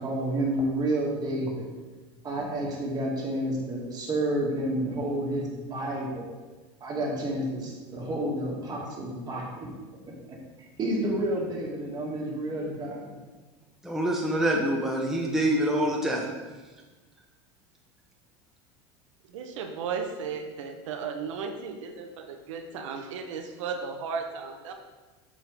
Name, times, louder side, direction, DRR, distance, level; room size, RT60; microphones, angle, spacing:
voice 1, 0.0-1.6 2.2-6.2 6.8-9.7 10.3-10.4 10.8-13.1, right 1 dB, 25° right, -3 dB, 2.0 m, -30 dB
voice 2, 13.8-16.3, right 1 dB, ahead, -1 dB, 0.7 m, -25 dB
voice 3, 19.3-24.7, right 5 dB, 85° right, 5 dB, 0.8 m, -35 dB
7.2 x 5.6 x 3.4 m, 1.3 s
supercardioid pair, 120°, 15 cm